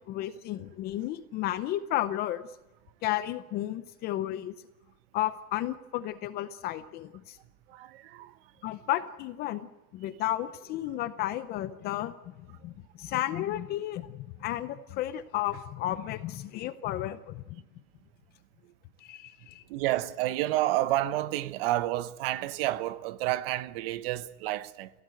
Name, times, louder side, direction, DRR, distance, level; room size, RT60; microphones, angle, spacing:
voice 1, 0.0-2.4 3.0-4.5 5.1-7.4 8.6-9.7 9.9-12.3 12.6-17.4 19.0-19.6, left 13 dB, 25° left, 0.7 m, -33 dB
voice 2, 7.7-8.4 19.7-24.9, right 15 dB, 45° right, 1.0 m, -30 dB
27.0 x 17.0 x 7.7 m
supercardioid pair, 150°, 43 cm